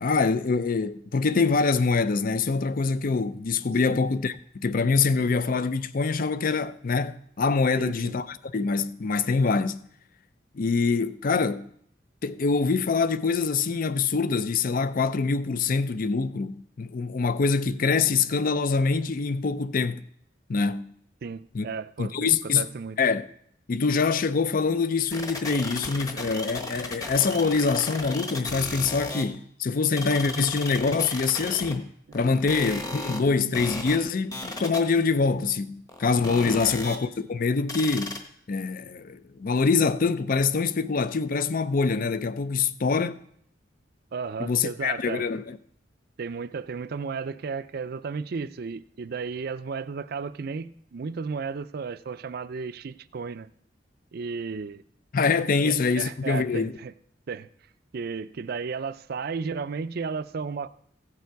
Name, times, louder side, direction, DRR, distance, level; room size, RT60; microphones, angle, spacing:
voice 1, 0.0-9.8 10.5-11.7 12.2-20.0 20.5-20.9 21.5-21.6 22.0-22.7 23.0-23.3 23.7-38.2 38.5-43.2 44.4-45.6 55.1-56.7, left 4 dB, 50° left, 0.5 m, -25 dB
voice 2, 7.8-8.2 21.2-23.0 32.1-32.9 36.4-36.6 44.1-45.3 46.2-53.5 54.1-54.8 55.6-56.9 57.3-57.5 57.9-60.7, right 5 dB, 55° right, 0.4 m, -34 dB
sound 1, 25.1-29.3 29.9-31.7 32.1-33.2 33.5-34.0 34.3-35.0 35.4-35.5 35.9-37.0 37.7-38.2, left 2 dB, 20° left, 1.2 m, -34 dB
16.0 x 6.9 x 4.6 m
head